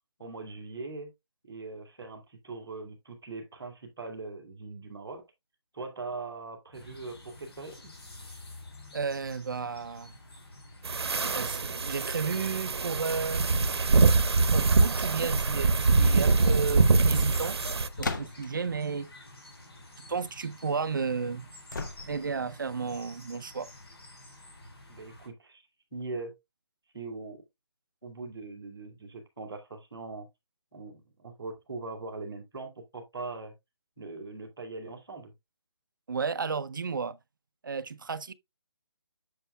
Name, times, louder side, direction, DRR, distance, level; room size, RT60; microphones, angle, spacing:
voice 1, 0.2-1.1 1.4-5.2 5.7-7.9 24.9-25.6 25.9-26.3 26.9-27.4 28.0-30.3 30.7-33.5 34.0-35.3, right 3 dB, ahead, 0.3 m, -41 dB
sound 1, 6.7-25.3, left 1 dB, 60° left, 4.3 m, -48 dB
voice 2, 8.9-10.1 11.3-13.5 14.5-17.6 18.0-19.1 20.1-21.5 22.1-23.7 36.1-37.2 37.6-38.3, right 5 dB, 45° right, 0.5 m, -33 dB
sound 2, 10.8-17.9, right 3 dB, 65° right, 0.9 m, -24 dB
sound 3, 18.0-18.7 21.7-22.4, left 3 dB, 45° left, 0.9 m, -35 dB
8.1 x 6.7 x 2.2 m
hypercardioid pair, 170°, 15 cm